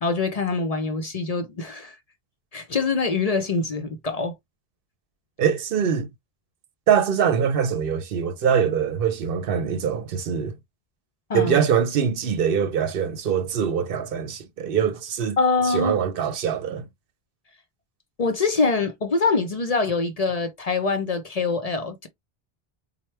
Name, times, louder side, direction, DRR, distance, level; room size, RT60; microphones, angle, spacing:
voice 1, 0.0-1.9 2.5-4.3 11.3-11.6 15.4-16.0 18.2-22.1, left 4 dB, 45° left, 0.6 m, -24 dB
voice 2, 5.4-6.1 6.9-10.6 11.3-15.4 15.6-16.9, right 7 dB, 70° right, 0.8 m, -23 dB
4.3 x 2.1 x 3.2 m
omnidirectional pair, 1.0 m